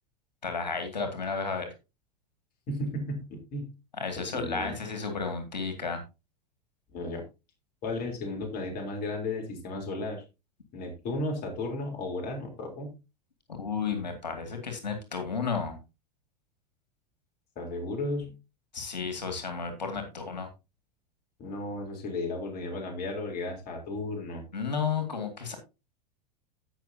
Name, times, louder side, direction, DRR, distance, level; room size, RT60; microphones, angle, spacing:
voice 1, 0.4-1.7 4.0-6.0 13.6-15.8 18.7-20.5 24.5-25.6, left 5 dB, 90° left, 6 dB, 2.3 m, -32 dB
voice 2, 2.7-3.7 4.2-4.8 6.9-7.2 7.8-10.2 10.7-12.9 17.6-18.3 21.4-24.4, left 2 dB, 45° left, 2 dB, 3.7 m, -34 dB
16.5 x 6.1 x 2.8 m, 0.27 s
hypercardioid pair, 95°, 21 cm